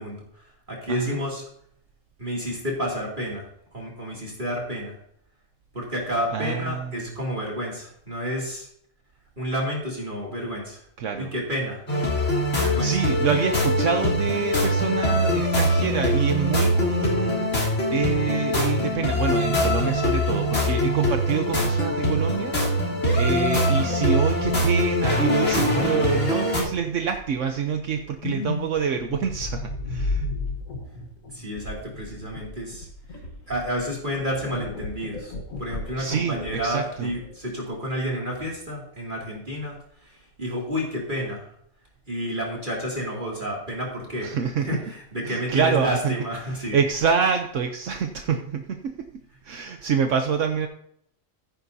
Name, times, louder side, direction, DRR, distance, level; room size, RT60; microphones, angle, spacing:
voice 1, 0.0-1.4 2.2-3.5 3.7-5.0 5.7-8.7 9.4-10.8 11.2-11.8 12.6-13.0 25.5-25.9 31.3-32.9 33.5-41.5 42.1-46.8 49.6-49.7, equal, 40° right, -2 dB, 2.8 m, -30 dB
voice 2, 0.9-1.2 6.3-6.9 11.0-11.3 12.8-30.2 36.0-36.4 36.6-37.1 44.2-44.7 45.2-46.1 46.7-49.1 49.4-50.7, right 7 dB, 70° right, 5 dB, 1.1 m, -26 dB
sound 1, 11.9-26.6, left 1 dB, 65° left, 3.7 m, -23 dB
sound 2, 28.2-37.4, left 3 dB, 85° left, 1.7 m, -34 dB
15.0 x 9.9 x 2.8 m, 0.68 s
omnidirectional pair, 1.3 m